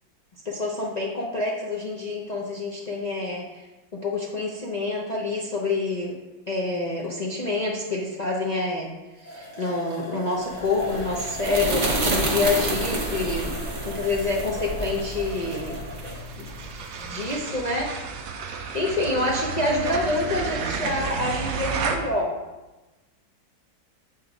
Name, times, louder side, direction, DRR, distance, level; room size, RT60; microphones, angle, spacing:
voice 1, 0.4-3.6 3.9-6.2 6.5-8.9 9.2-15.8 16.4-16.5 17.0-17.9 18.7-22.4, left 2 dB, 85° left, -4 dB, 0.3 m, -27 dB
Sucking on straw, 8.8-8.9 9.2-16.2, equal, 25° left, 1.8 m, -40 dB
sound 1, 10.5-17.1, right 2 dB, 85° right, 0.4 m, -29 dB
sound 2, 10.8-22.0, right 5 dB, 65° right, 0.8 m, -34 dB
7.6 x 4.2 x 5.0 m, 1.1 s
omnidirectional pair, 2.1 m